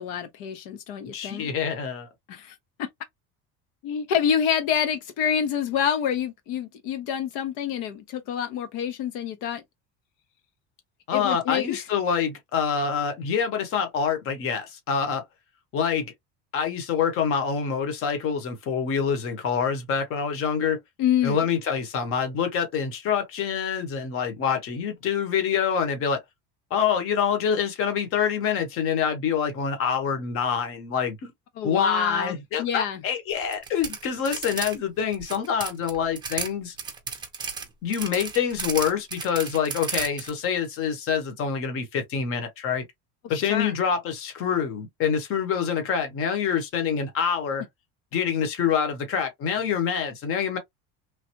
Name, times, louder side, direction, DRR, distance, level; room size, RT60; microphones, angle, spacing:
voice 1, 0.0-1.5 2.3-2.9 3.8-9.6 11.1-11.8 21.0-21.4 31.6-33.0 43.3-43.7, left 8 dB, 80° left, 0.9 m, -27 dB
voice 2, 1.1-2.1 11.1-15.2 15.7-16.1 16.5-20.8 21.2-26.2 26.7-31.3 31.6-36.8 37.8-42.8 43.3-47.7 48.1-50.6, left 7 dB, 40° left, 1.0 m, -26 dB
sound 1, 33.3-34.7 35.0-36.5 36.8-40.3, right 5 dB, 15° right, 0.5 m, -33 dB
3.2 x 2.2 x 2.9 m
cardioid pair, 165°, 35 cm